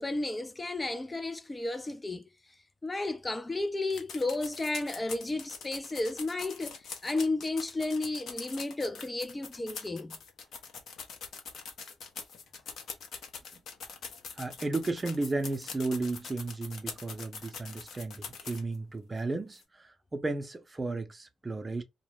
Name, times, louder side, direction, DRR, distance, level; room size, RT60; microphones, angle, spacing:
voice 1, 0.0-2.3 2.8-10.2, left 2 dB, 25° left, 0.4 m, -33 dB
sound 1, 3.9-18.8 19.2-19.3 19.5-19.6, left 5 dB, 70° left, 0.6 m, -43 dB
voice 2, 14.3-21.8, right 3 dB, 30° right, 0.6 m, -34 dB
2.2 x 2.0 x 3.1 m
hypercardioid pair, 40°, 0 cm